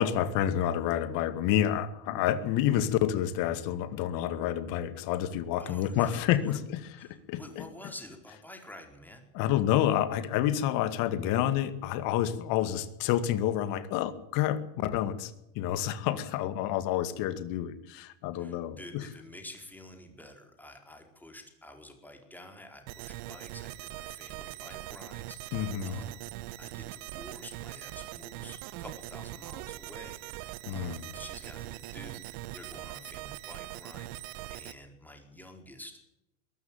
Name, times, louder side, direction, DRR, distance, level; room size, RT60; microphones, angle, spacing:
voice 1, 0.0-6.8 7.3-7.6 9.3-19.1 25.5-26.0 30.7-31.1, left 11 dB, 55° left, 2.3 m, -29 dB
voice 2, 5.6-6.6 7.0-9.3 18.3-26.2 26.6-35.9, left 1 dB, 5° left, 4.7 m, -49 dB
sound 1, 22.9-34.7, right 17 dB, 55° right, 1.2 m, -42 dB
22.0 x 13.5 x 9.0 m
supercardioid pair, 120°, 40 cm